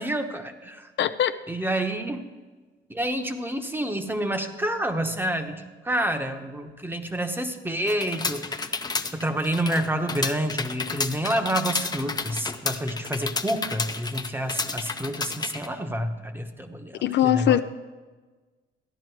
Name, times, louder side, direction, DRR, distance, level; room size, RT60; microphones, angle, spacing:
voice 1, 0.0-0.9 1.5-2.3 2.9-8.7 9.1-17.6, right 1 dB, 10° right, 7 dB, 1.0 m, -28 dB
voice 2, 1.0-1.4 17.0-17.6, left 11 dB, 60° left, 11 dB, 0.4 m, -21 dB
sound 1, 7.9-15.7, left 4 dB, 20° left, 0.6 m, -31 dB
14.0 x 10.0 x 4.6 m, 1.3 s
cardioid pair, 90°, 20 cm